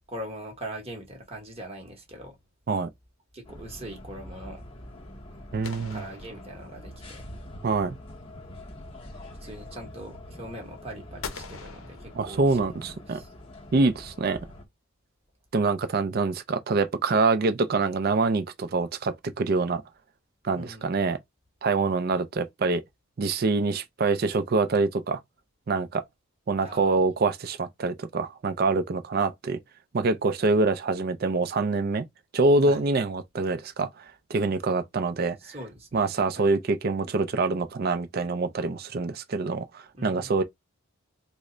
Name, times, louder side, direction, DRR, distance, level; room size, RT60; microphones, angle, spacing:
voice 1, 0.1-2.4 3.3-4.6 5.3-5.4 5.9-7.2 9.4-12.6 13.1-13.3 20.6-20.9 26.6-26.9 32.6-32.8 35.4-36.1 36.4-36.5 39.9-40.3, right 1 dB, 25° right, 0.8 m, -41 dB
sound 1, 3.4-14.7, left 1 dB, 25° left, 0.7 m, -44 dB
voice 2, 5.5-6.0 7.6-8.0 12.1-13.2 13.7-14.4 15.5-19.8 20.4-21.2 21.6-22.8 23.2-25.2 25.7-26.0 26.5-29.6 29.9-32.0 32.3-33.9 34.3-35.4 35.9-40.4, right 3 dB, 45° right, 0.4 m, -25 dB
sound 2, 5.6-7.1 11.2-12.8, left 5 dB, 65° left, 0.6 m, -43 dB
3.2 x 2.1 x 3.7 m
head